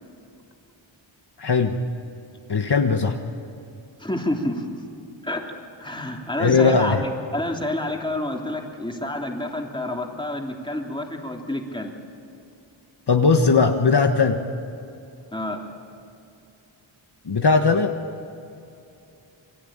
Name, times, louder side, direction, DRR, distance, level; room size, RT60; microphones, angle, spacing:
voice 1, 1.4-1.8 2.5-3.2 6.4-7.0 13.1-14.4 17.2-17.9, left 4 dB, 55° left, 4 dB, 1.5 m, -19 dB
voice 2, 4.0-4.7 5.2-5.4 5.8-11.9 15.3-15.6, left 1 dB, 10° left, 1 dB, 3.3 m, -28 dB
28.0 x 22.5 x 8.9 m, 2.7 s
wide cardioid pair, 90°, 48 cm